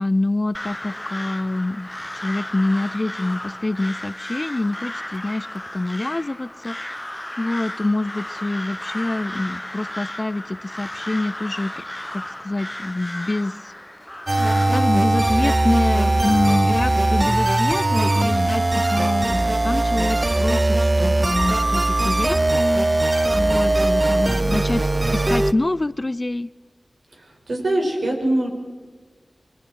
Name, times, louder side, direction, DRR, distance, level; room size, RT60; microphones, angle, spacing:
voice 1, 0.0-1.9 2.1-7.0 7.4-11.8 12.1-13.7 14.3-24.8 25.1-26.5, left 2 dB, 30° left, 17 dB, 0.5 m, -26 dB
Crow, 0.5-14.7, left 1 dB, 10° left, 0.9 m, -34 dB
sound 1, 14.3-25.5, right 2 dB, 30° right, 0.8 m, -20 dB
voice 2, 27.1-28.5, right 1 dB, 70° right, 1 dB, 6.1 m, -23 dB
29.0 x 22.5 x 4.7 m, 1.4 s
wide cardioid pair, 80°, 0 cm